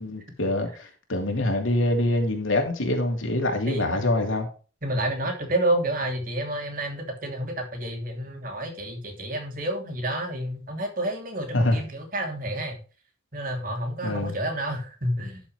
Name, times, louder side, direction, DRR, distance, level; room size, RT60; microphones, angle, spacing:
voice 1, 0.0-4.5 11.5-11.8 14.0-14.4, left 1 dB, 85° left, 3 dB, 2.9 m, -25 dB
voice 2, 3.7-4.0 4.8-12.8 13.3-15.4, right 1 dB, 45° right, 3 dB, 3.0 m, -29 dB
11.5 x 7.1 x 3.3 m, 0.36 s
head